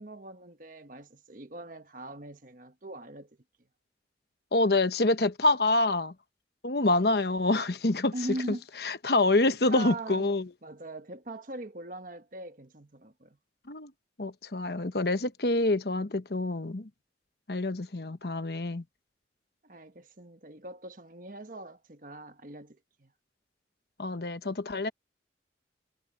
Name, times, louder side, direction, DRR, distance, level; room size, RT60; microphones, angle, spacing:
voice 1, 0.0-3.3 8.1-8.6 9.4-10.3 10.6-13.4 19.6-23.1, right 1 dB, 45° right, 1.3 m, -41 dB
voice 2, 4.5-6.1 6.6-8.1 8.5-8.6 8.8-10.5 13.7-13.9 14.2-16.9 17.5-18.8 24.0-24.9, left 2 dB, 60° left, 1.0 m, -26 dB
head